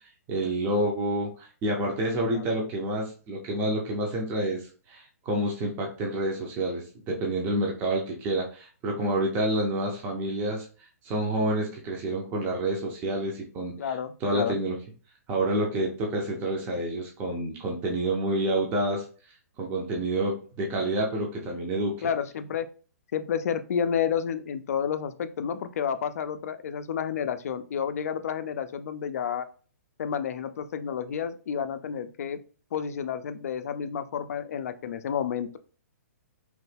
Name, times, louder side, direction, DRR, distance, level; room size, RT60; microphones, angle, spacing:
voice 1, 0.3-10.7 11.0-13.9 14.2-14.8 15.3-19.0 19.6-22.1, right 1 dB, 25° right, 0 dB, 0.6 m, -28 dB
voice 2, 13.8-14.6 22.0-22.7 23.1-29.4 30.0-32.4 32.7-35.6, left 8 dB, 65° left, 11 dB, 0.3 m, -30 dB
3.0 x 2.1 x 3.2 m, 0.39 s
hypercardioid pair, 145°, 9 cm